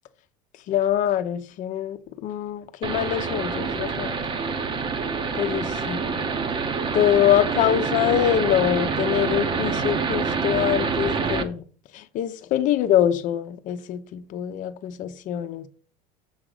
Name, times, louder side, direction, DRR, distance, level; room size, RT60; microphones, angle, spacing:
voice 1, 0.7-4.1 5.3-6.3 6.9-11.6 11.9-15.7, left 11 dB, 50° left, 0.8 m, -24 dB
sound 1, 2.8-11.4, right 5 dB, 30° right, 1.0 m, -26 dB
7.2 x 3.8 x 6.4 m
supercardioid pair, 125°, 17 cm